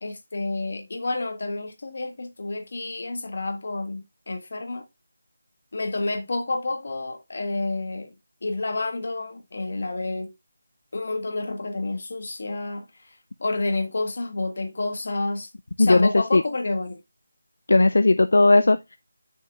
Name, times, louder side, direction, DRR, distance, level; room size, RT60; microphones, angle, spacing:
voice 1, 0.0-4.9 5.7-8.1 8.4-10.3 10.9-12.9 13.4-15.5 15.8-17.0 18.6-18.7, left 2 dB, 45° left, 1.7 m, -29 dB
voice 2, 15.8-16.4 17.7-19.0, left 2 dB, 65° left, 0.5 m, -17 dB
9.5 x 6.4 x 2.5 m
figure-of-eight pair, 180°, 0 cm